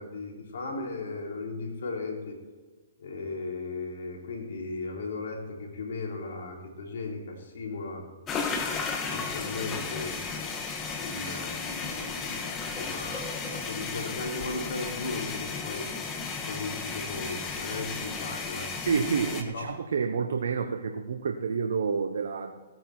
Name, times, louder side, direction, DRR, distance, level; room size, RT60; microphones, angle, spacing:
voice 1, 0.0-2.3 3.0-8.1 9.1-10.2 11.0-15.9 16.4-18.7 19.5-19.6, left 3 dB, 70° left, 0 dB, 3.7 m, -36 dB
sound 1, 8.3-19.4, left 4 dB, 20° left, 1.6 m, -34 dB
voice 2, 18.8-22.6, right 5 dB, 75° right, 5 dB, 1.0 m, -29 dB
17.0 x 9.4 x 4.4 m, 1.4 s
hypercardioid pair, 130°, 0 cm